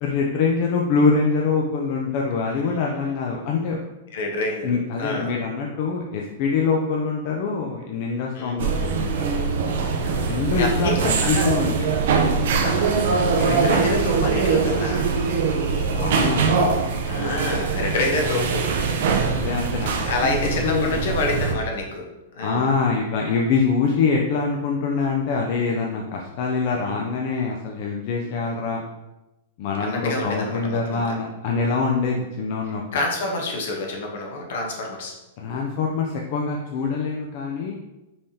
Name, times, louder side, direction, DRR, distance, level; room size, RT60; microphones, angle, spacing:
voice 1, 0.0-3.8 4.6-9.2 10.2-11.9 13.5-13.7 15.9-16.5 19.2-19.9 20.2-20.3 20.6-21.1 22.4-28.8 29.6-32.8 35.4-37.7, left 4 dB, 40° left, 0 dB, 0.5 m, -24 dB
voice 2, 4.1-4.7 5.0-5.3 8.3-8.6 10.0-11.5 12.6-15.0 17.1-18.7 20.1-22.0 22.3-22.7 26.8-26.9 29.8-31.1 32.7-35.1, left 2 dB, 60° left, 1 dB, 1.1 m, -27 dB
sound 1, 8.6-21.5, right 5 dB, 55° right, 0.6 m, -22 dB
5.4 x 3.4 x 2.8 m, 0.99 s
supercardioid pair, 170°, 0 cm